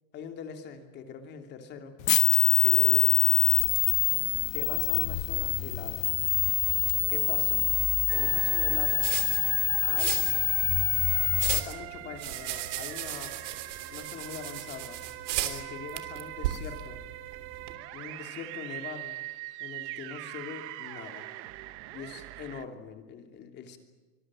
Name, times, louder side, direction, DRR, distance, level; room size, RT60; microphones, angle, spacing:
voice 1, 0.1-1.9 2.6-3.3 4.5-6.1 7.1-7.6 8.1-9.1 9.8-10.3 11.5-13.3 13.9-15.0 15.4-17.0 17.9-19.2 19.6-21.3 21.9-23.8, left 7 dB, 25° left, 5 dB, 2.9 m, -42 dB
sound 1, 2.0-11.6, left 15 dB, 85° left, 1.1 m, -25 dB
sound 2, 5.6-17.7, right 12 dB, 65° right, 3.3 m, -38 dB
sound 3, 8.1-22.6, right 17 dB, 35° right, 1.0 m, -42 dB
25.5 x 22.0 x 8.9 m, 1.2 s
supercardioid pair, 170°, 39 cm